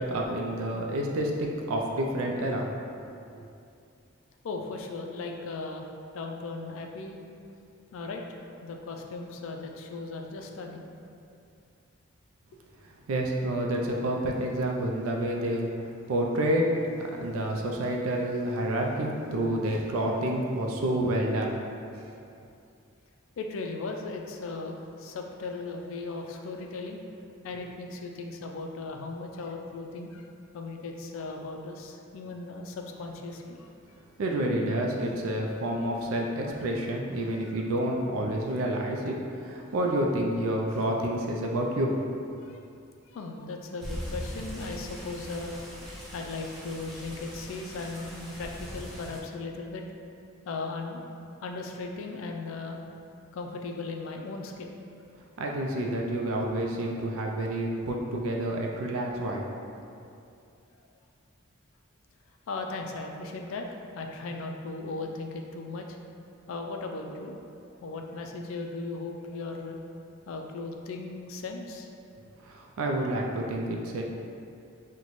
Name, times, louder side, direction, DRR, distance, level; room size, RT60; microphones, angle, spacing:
voice 1, 0.0-2.7 13.1-15.7 16.1-16.8 17.1-21.6 22.0-22.1 34.2-41.9 55.4-59.4 72.4-74.0, right 1 dB, 80° right, 0 dB, 0.4 m, -29 dB
voice 2, 4.4-5.9 6.1-7.2 7.9-8.2 8.6-10.9 23.4-27.0 27.4-30.3 30.5-33.7 37.3-37.5 42.4-42.6 43.1-45.6 46.1-49.8 50.5-51.1 51.4-52.8 53.3-54.7 62.5-63.7 63.9-66.0 66.5-67.4 67.8-69.8 70.3-71.9, left 3 dB, 70° left, 3 dB, 0.3 m, -37 dB
sound 1, 43.8-49.2, equal, ahead, 0.4 m, -41 dB
3.9 x 2.2 x 3.0 m, 2.6 s
head